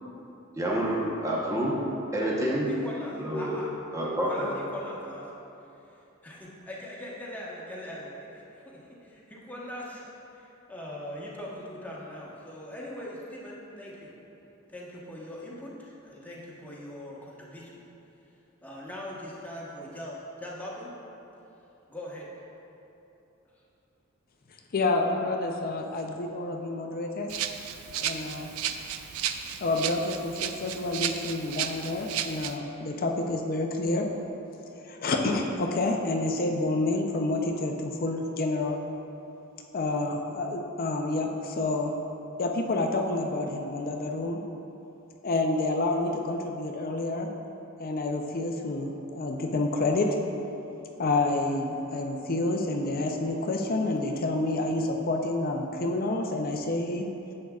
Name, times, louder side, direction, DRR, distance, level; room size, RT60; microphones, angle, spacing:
voice 1, 0.5-1.7 2.1-2.7 3.2-3.6 3.9-4.5, right 1 dB, 15° right, -5 dB, 0.9 m, -28 dB
voice 2, 2.7-3.7 4.2-5.2 6.2-14.1 14.7-17.8 18.6-20.9 21.9-22.3, left 1 dB, 10° left, -5 dB, 1.2 m, -41 dB
voice 3, 24.7-27.3 28.0-28.5 29.6-34.1 34.8-38.8 39.7-41.9 42.4-44.4 45.2-47.3 47.8-50.1 51.0-57.1, left 2 dB, 45° left, 2 dB, 0.5 m, -28 dB
Rattle (instrument), 27.3-32.5, right 9 dB, 90° right, 0.4 m, -34 dB
10.5 x 7.6 x 2.4 m, 3.0 s
head